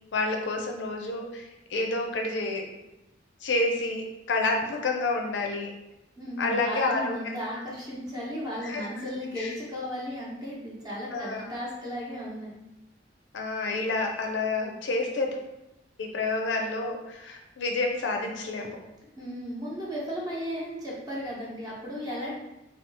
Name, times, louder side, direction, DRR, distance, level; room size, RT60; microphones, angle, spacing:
voice 1, 0.1-2.7 3.4-5.7 6.4-7.1 8.6-8.9 9.4-9.5 11.1-11.5 13.3-15.4 16.0-18.8, left 2 dB, 75° left, 2 dB, 0.4 m, -29 dB
voice 2, 6.2-12.6 19.2-22.3, equal, 20° right, -5 dB, 0.9 m, -35 dB
2.8 x 2.3 x 3.4 m, 0.94 s
head